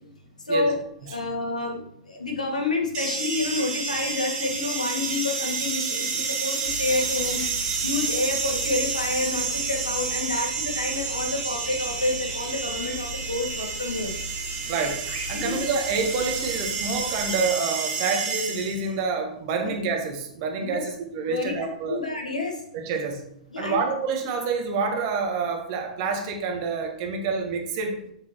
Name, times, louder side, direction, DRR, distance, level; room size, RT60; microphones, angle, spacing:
voice 1, 1.1-1.8 2.1-7.4 7.8-14.1 15.3-15.6 19.6-19.7 20.6-20.8 21.3-21.5 21.9-22.5 23.5-23.8, left 3 dB, 80° left, 1 dB, 1.8 m, -28 dB
sound 1, 2.9-18.9, right 5 dB, 25° right, 1.6 m, -30 dB
sound 2, 6.6-17.3, equal, 60° right, 1.7 m, -40 dB
voice 2, 14.7-15.0 15.3-22.0 22.7-23.2 23.6-28.0, right 4 dB, 40° right, 3 dB, 1.5 m, -28 dB
7.3 x 7.2 x 3.2 m, 0.72 s
figure-of-eight pair, 105°, 4 cm